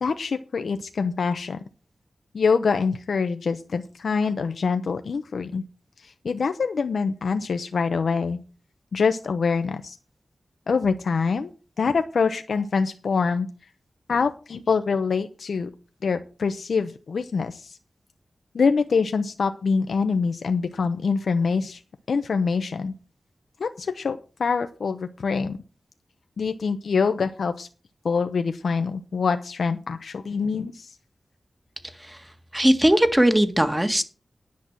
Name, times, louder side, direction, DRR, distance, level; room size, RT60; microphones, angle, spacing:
voice 1, 0.0-1.6 2.3-5.6 6.0-8.4 8.9-10.0 10.7-11.5 11.8-13.5 14.1-15.7 16.0-17.8 18.5-21.8 22.1-22.9 23.6-25.6 26.4-27.7 28.0-30.9, left 5 dB, 85° left, 8 dB, 0.7 m, -25 dB
voice 2, 32.5-34.0, right 1 dB, 15° right, 9 dB, 1.7 m, -19 dB
10.5 x 6.1 x 7.3 m, 0.36 s
cardioid pair, 55°, 0 cm